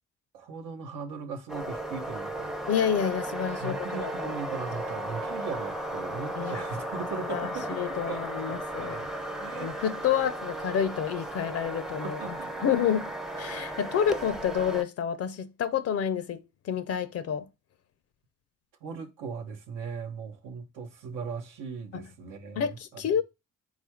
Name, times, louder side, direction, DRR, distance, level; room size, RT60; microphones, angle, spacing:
voice 1, 0.3-2.6 3.6-9.1 9.4-9.7 12.2-12.5 18.8-23.0, right 5 dB, 85° right, 0.8 m, -39 dB
sound 1, 1.5-14.8, right 1 dB, ahead, 0.4 m, -35 dB
voice 2, 2.7-4.4 6.4-6.6 7.3-9.0 9.5-12.2 12.6-13.1 13.4-17.5 21.9-22.0 22.6-23.2, left 8 dB, 55° left, 0.4 m, -29 dB
3.6 x 2.4 x 4.3 m
cardioid pair, 90°, 30 cm